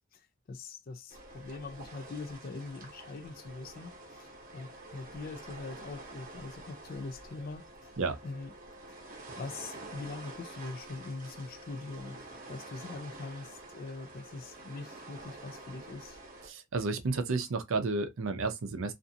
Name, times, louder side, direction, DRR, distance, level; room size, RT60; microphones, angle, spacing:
voice 1, 0.5-7.9 8.2-8.5 9.4-12.2 12.5-16.2, left 3 dB, 40° left, 0.3 m, -43 dB
sound 1, 1.1-16.5, right 2 dB, 40° right, 0.8 m, -48 dB
voice 2, 16.5-18.9, right 3 dB, 70° right, 0.6 m, -31 dB
2.5 x 2.4 x 2.6 m
head